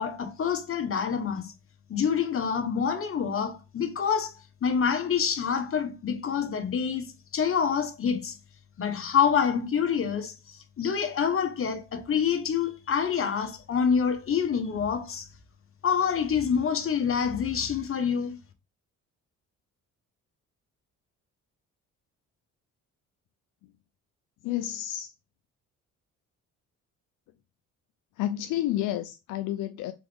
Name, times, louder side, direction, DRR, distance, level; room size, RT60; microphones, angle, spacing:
voice 1, 0.0-1.5 1.9-4.3 4.6-8.4 8.8-15.3 15.8-18.4, left 7 dB, 45° left, 1.0 m, -27 dB
voice 2, 24.4-25.1 28.2-29.9, left 13 dB, 85° left, 0.5 m, -30 dB
3.9 x 3.6 x 3.4 m
cardioid pair, 90°, 30 cm